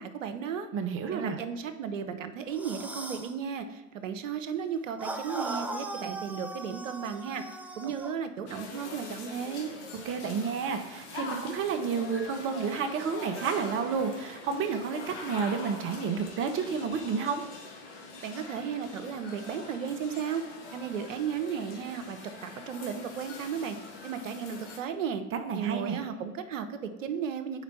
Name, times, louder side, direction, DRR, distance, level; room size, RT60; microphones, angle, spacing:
voice 1, 0.0-0.7 1.1-7.4 7.8-9.7 18.2-20.4 20.7-23.8 24.0-25.2 25.5-27.6, right 7 dB, 90° right, 9 dB, 0.7 m, -35 dB
voice 2, 0.7-1.4 10.0-17.4 25.3-26.0, right 6 dB, 35° right, 6 dB, 0.9 m, -30 dB
sound 1, 2.5-3.3 5.0-8.1, right 2 dB, 5° right, 0.4 m, -38 dB
sound 2, 8.5-24.8, left 3 dB, 65° left, 1.4 m, -44 dB
5.0 x 4.3 x 5.4 m, 1.2 s
hypercardioid pair, 95°, 37 cm